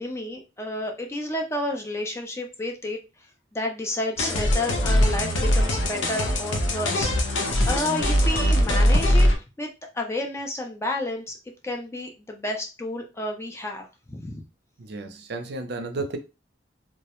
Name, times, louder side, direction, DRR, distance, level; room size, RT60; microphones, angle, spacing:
voice 1, 0.0-3.0 3.5-7.1 7.7-9.3 9.6-9.7 9.9-11.4 11.6-14.4, left 1 dB, 15° left, 0.4 m, -30 dB
sound 1, 4.2-9.4, left 1 dB, 80° left, 0.5 m, -21 dB
voice 2, 14.8-16.2, right 3 dB, 60° right, 0.5 m, -33 dB
2.3 x 2.0 x 2.9 m
head